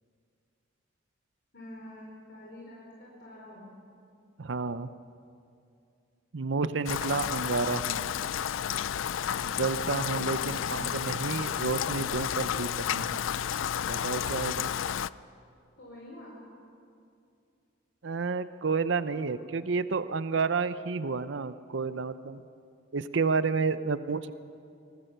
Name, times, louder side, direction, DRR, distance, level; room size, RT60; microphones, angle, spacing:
voice 1, 1.5-3.7 10.3-10.8 15.8-16.4 19.1-19.3, left 1 dB, 65° left, -3 dB, 4.1 m, -47 dB
voice 2, 4.4-4.9 6.3-8.1 9.4-13.2 13.9-14.7 18.0-22.4 22.9-24.3, right 4 dB, 70° right, 13 dB, 0.7 m, -30 dB
Rain, 6.9-15.1, left 9 dB, 85° left, 0.4 m, -31 dB
24.5 x 18.5 x 6.7 m, 2.5 s
head